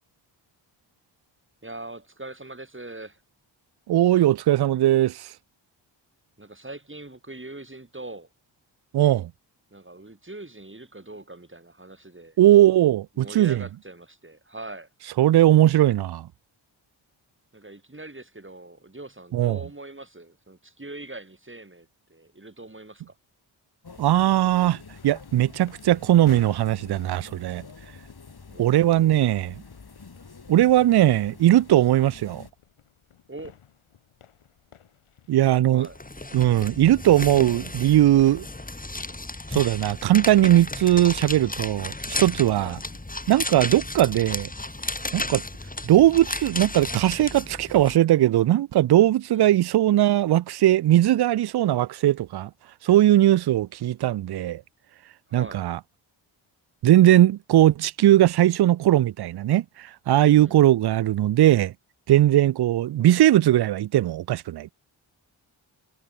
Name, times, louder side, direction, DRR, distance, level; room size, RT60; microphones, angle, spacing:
voice 1, 1.6-3.2 6.4-8.3 9.7-12.4 12.7-14.9 17.5-23.1 28.5-29.2 33.3-33.6 35.6-36.0 42.5-42.8 49.3-49.5 55.3-55.6 60.3-60.6, right 2 dB, 25° right, 7.8 m, -42 dB
voice 2, 3.9-5.3 8.9-9.3 12.4-13.6 15.2-16.3 19.3-19.6 24.0-27.6 28.6-29.5 30.5-32.4 35.3-35.9 36.3-38.5 39.5-41.9 42.2-42.8 43.3-44.5 45.1-45.4 45.8-52.5 52.8-54.6 55.3-55.8 56.8-61.7 62.1-64.7, right 13 dB, 55° right, 0.5 m, -19 dB
sound 1, 23.8-32.5, left 4 dB, 50° left, 6.4 m, -46 dB
sound 2, 25.0-43.0, left 9 dB, 90° left, 5.1 m, -52 dB
sound 3, 35.8-48.0, left 2 dB, 15° left, 2.7 m, -34 dB
cardioid pair, 45°, 48 cm